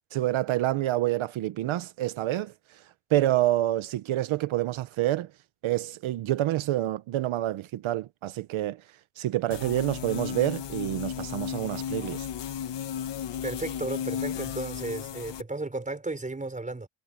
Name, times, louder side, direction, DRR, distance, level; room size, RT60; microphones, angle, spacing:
voice 1, 0.1-2.8 3.1-5.3 5.6-8.8 9.2-12.3, right 14 dB, 85° right, 0.9 m, -27 dB
sound 1, 9.5-15.4, left 9 dB, 60° left, 1.3 m, -34 dB
voice 2, 13.4-16.9, right 2 dB, 15° right, 5.7 m, -34 dB
cardioid pair, 140°, 47 cm